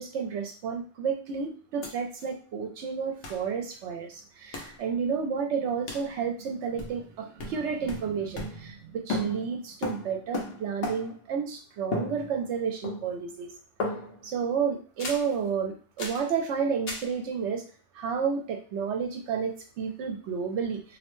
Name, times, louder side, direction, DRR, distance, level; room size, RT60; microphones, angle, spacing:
voice 1, 0.0-13.5 14.2-17.6 17.9-21.0, right 6 dB, 70° right, 4 dB, 0.9 m, -31 dB
sound 1, 1.8-1.9 2.2-2.3 3.2-3.5 4.5-4.8 5.9-6.1 6.8-7.1 7.4-8.8 9.1-11.3 11.9-12.6 12.8-13.3 13.8-14.3 15.0-15.3 16.0-16.3 16.9-17.1, left 2 dB, 85° left, 1.1 m, -35 dB
2.7 x 2.1 x 3.0 m, 0.39 s
omnidirectional pair, 1.2 m